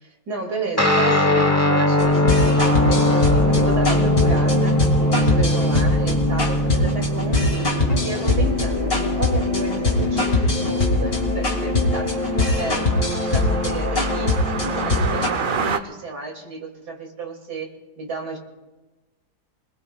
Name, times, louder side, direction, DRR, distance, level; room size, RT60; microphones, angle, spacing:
voice 1, 0.0-7.6 8.0-18.4, right 3 dB, 75° right, 0 dB, 3.1 m, -33 dB
Guitar, 0.8-8.5, left 1 dB, 10° left, 0.8 m, -20 dB
sound 1, 2.0-15.3, left 2 dB, 35° left, 3.1 m, -22 dB
sound 2, 2.6-15.8, right 5 dB, 55° right, 0.6 m, -33 dB
28.0 x 20.5 x 2.3 m, 1.1 s
omnidirectional pair, 1.8 m